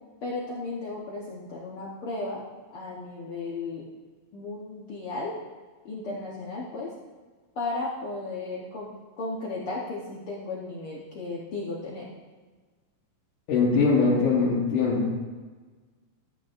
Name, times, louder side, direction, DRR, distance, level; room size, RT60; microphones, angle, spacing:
voice 1, 0.2-2.4 2.7-3.9 4.3-5.3 5.8-6.9 7.5-8.9 9.2-12.1 14.0-14.2, left 3 dB, 85° left, -5 dB, 1.2 m, -34 dB
voice 2, 13.5-15.1, left 4 dB, 65° left, -7 dB, 2.7 m, -22 dB
14.5 x 8.6 x 2.5 m, 1.4 s
omnidirectional pair, 4.1 m